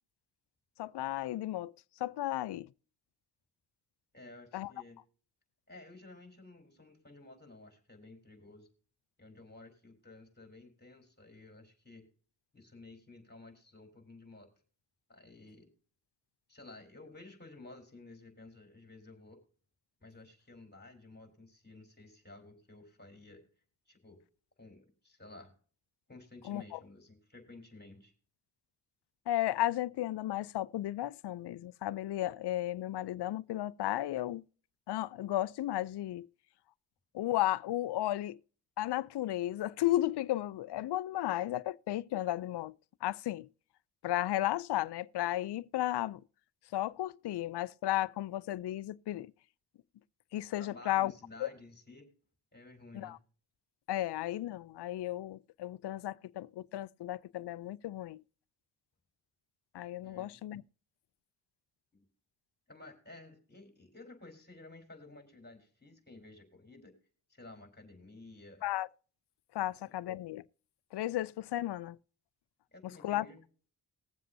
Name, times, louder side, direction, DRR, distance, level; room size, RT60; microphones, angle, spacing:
voice 1, 0.8-1.7 2.0-2.7 4.5-4.7 26.4-26.8 29.3-34.4 34.9-36.3 37.1-38.4 38.8-42.8 43.0-43.5 44.0-46.2 46.7-49.3 50.3-51.1 51.4-51.5 52.9-53.2 53.9-58.2 59.7-60.6 68.6-68.9 69.5-70.4 70.9-72.0 73.0-73.2, left 14 dB, 55° left, 0.6 m, -34 dB
voice 2, 4.1-5.0 5.7-8.7 9.2-12.1 12.5-14.5 15.1-15.7 16.5-19.4 20.0-23.4 23.9-24.2 24.6-25.5 26.1-28.1 50.6-52.1 52.5-53.2 60.0-60.4 61.9-62.1 62.7-66.9 67.3-68.6 69.6-70.0 72.7-73.4, left 2 dB, 20° left, 4.2 m, -53 dB
21.0 x 7.5 x 2.7 m
supercardioid pair, 45°, 50 cm